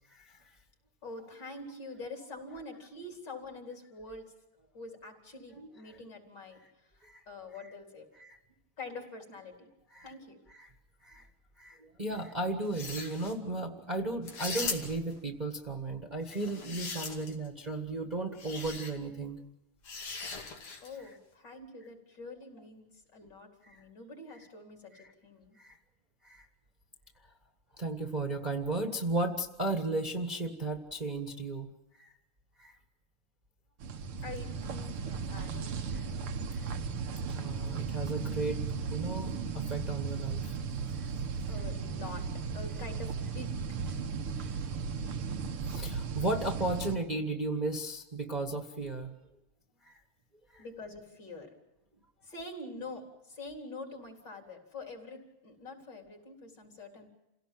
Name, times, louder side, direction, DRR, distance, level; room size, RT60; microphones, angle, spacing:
voice 1, 0.1-0.4 5.5-5.7 7.0-7.2 8.2-8.4 9.9-10.1 10.6-10.7 11.0-11.3 11.6-19.4 20.3-20.5 23.6-23.8 24.9-25.1 25.6-25.8 26.2-26.4 27.8-31.7 32.0-32.1 32.6-32.8 35.9-36.2 36.5-36.7 37.2-38.6 38.9-40.5 40.9-41.1 45.7-49.1 49.8-49.9 50.5-50.6, right 2 dB, 20° right, 4 dB, 1.4 m, -35 dB
voice 2, 1.0-4.3 4.7-6.9 7.3-8.1 8.8-9.7 10.0-10.4 20.8-25.6 34.2-35.9 41.4-43.8 50.6-51.5 52.2-57.1, left 3 dB, 50° left, 2 dB, 4.5 m, -46 dB
sound 1, 12.6-13.3 14.2-15.1 16.3-17.5 18.4-18.9 19.8-20.9, left 4 dB, 85° left, 3.5 m, -39 dB
sound 2, 33.8-47.0, right 5 dB, 80° right, 2.1 m, -36 dB
28.5 x 17.0 x 7.6 m, 0.93 s
omnidirectional pair, 2.4 m